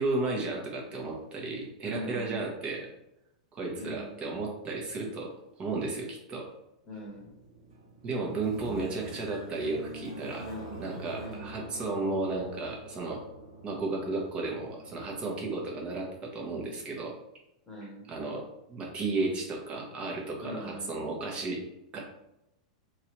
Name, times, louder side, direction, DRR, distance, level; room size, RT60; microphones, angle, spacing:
voice 1, 0.0-2.9 3.5-5.3 5.6-6.5 8.0-10.5 10.8-13.2 13.6-17.1 18.1-21.6 21.9-22.0, right 3 dB, 30° right, -1 dB, 1.1 m, -33 dB
voice 2, 1.8-2.4 3.8-4.1 6.9-7.3 10.4-10.8 11.2-11.5 17.7-18.0 20.4-21.0, equal, 25° left, -3 dB, 1.1 m, -41 dB
sound 1, 7.1-15.6, right 1 dB, 55° right, 1.3 m, -46 dB
3.0 x 2.7 x 3.0 m, 0.88 s
hypercardioid pair, 100°, 4 cm